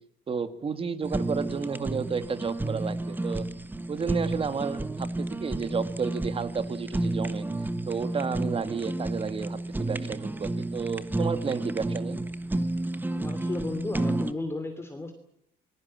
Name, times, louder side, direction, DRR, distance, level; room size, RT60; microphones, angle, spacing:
voice 1, 0.3-3.5 3.9-7.5 7.9-12.2, right 5 dB, 35° right, 11 dB, 2.2 m, -32 dB
Fire, 1.0-14.3, right 2 dB, 10° right, 1.4 m, -31 dB
voice 2, 13.1-15.1, left 2 dB, 15° left, 6 dB, 2.9 m, -34 dB
27.0 x 20.5 x 7.6 m, 0.72 s
cardioid pair, 110°, 17 cm